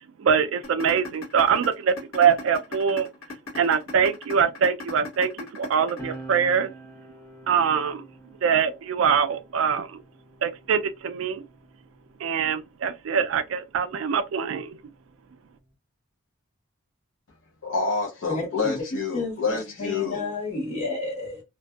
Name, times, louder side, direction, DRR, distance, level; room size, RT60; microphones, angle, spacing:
voice 1, 0.0-3.1 3.5-6.7 7.5-8.0 8.4-10.0 10.4-11.4 12.2-14.8, right 7 dB, 70° right, 0.3 m, -23 dB
sound 1, 0.6-6.6, left 3 dB, 80° left, 1.3 m, -37 dB
sound 2, 6.0-12.9 13.9-15.7, right 2 dB, 10° left, 0.7 m, -47 dB
voice 2, 17.6-20.3, left 4 dB, 60° left, 0.5 m, -28 dB
voice 3, 18.3-18.8 19.1-21.4, left 3 dB, 30° left, 1.2 m, -31 dB
2.5 x 2.2 x 2.2 m
head